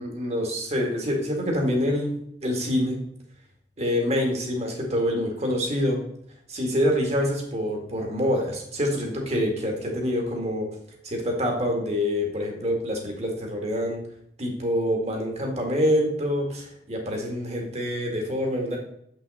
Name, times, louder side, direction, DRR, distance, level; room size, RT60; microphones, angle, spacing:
voice 1, 0.0-3.0 3.8-6.0 6.5-10.7 11.0-14.0 14.4-18.8, equal, 40° right, 1 dB, 1.9 m, -26 dB
7.4 x 5.7 x 4.1 m, 0.71 s
head